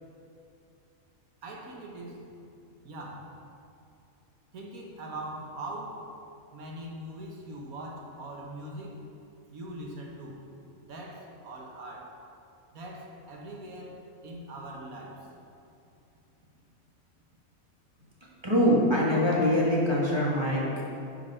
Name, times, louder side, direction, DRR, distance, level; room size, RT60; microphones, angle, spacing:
voice 1, 1.4-2.2 2.8-3.3 4.5-6.0 6.5-9.0 9.5-10.4 10.8-12.2 12.7-15.3, right 1 dB, 90° right, 0 dB, 1.6 m, -41 dB
voice 2, 18.4-20.6, equal, 20° right, -5 dB, 1.6 m, -23 dB
10.0 x 4.7 x 5.5 m, 2.6 s
omnidirectional pair, 1.5 m